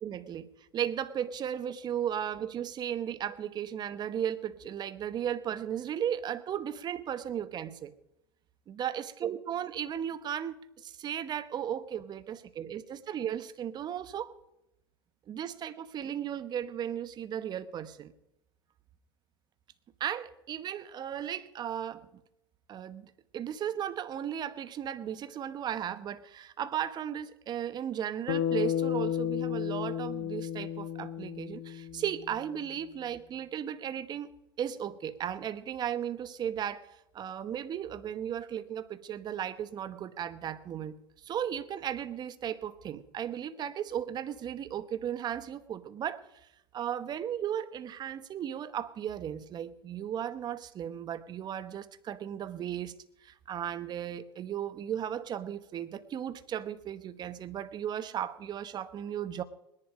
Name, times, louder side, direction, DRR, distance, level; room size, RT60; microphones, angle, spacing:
voice 1, 0.0-7.9 8.7-14.4 15.3-18.1 20.0-22.1 22.7-34.3 34.6-36.8 37.1-41.0 41.2-46.5 46.7-52.9 53.2-59.4, right 9 dB, 35° right, 13 dB, 1.1 m, -36 dB
Bass guitar, 28.3-32.7, left 10 dB, 60° left, 1.5 m, -33 dB
20.0 x 11.0 x 5.0 m, 0.84 s
hypercardioid pair, 95°, 12 cm